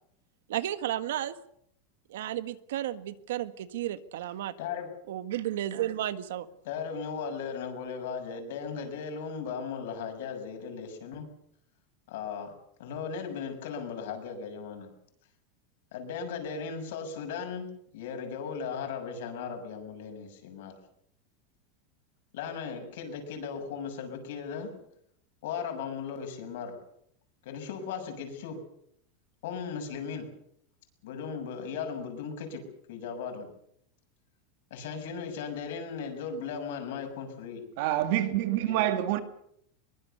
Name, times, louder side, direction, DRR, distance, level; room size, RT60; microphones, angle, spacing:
voice 1, 0.5-1.3 2.1-4.5 5.1-6.5, right 12 dB, 85° right, 1.6 m, -33 dB
voice 2, 4.6-4.9 6.6-11.3 12.1-12.5 12.8-14.9 15.9-17.7 17.9-20.7 22.3-24.7 25.4-26.8 27.4-28.6 29.4-30.3 31.0-33.5 34.7-37.6 38.7-38.9, left 6 dB, 65° left, 6.5 m, -37 dB
voice 3, 37.8-39.2, right 13 dB, 50° right, 2.0 m, -27 dB
23.0 x 22.5 x 6.8 m
supercardioid pair, 180°, 0 cm